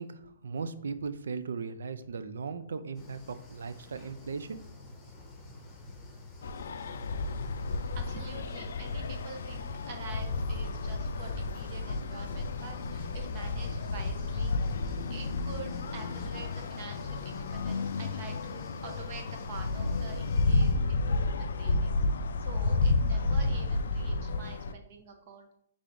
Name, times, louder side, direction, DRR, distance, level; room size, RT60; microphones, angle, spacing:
voice 1, 0.0-4.6, right 5 dB, 85° right, 12 dB, 0.4 m, -37 dB
sound 1, 2.9-20.7, left 2 dB, 15° left, 0.9 m, -49 dB
sound 2, 6.4-24.7, left 3 dB, 75° left, 0.3 m, -31 dB
voice 2, 8.0-14.6 15.1-22.0 22.4-25.5, right 4 dB, 40° right, 4 dB, 0.7 m, -47 dB
5.1 x 3.4 x 2.5 m, 0.72 s
hypercardioid pair, 160°, 0 cm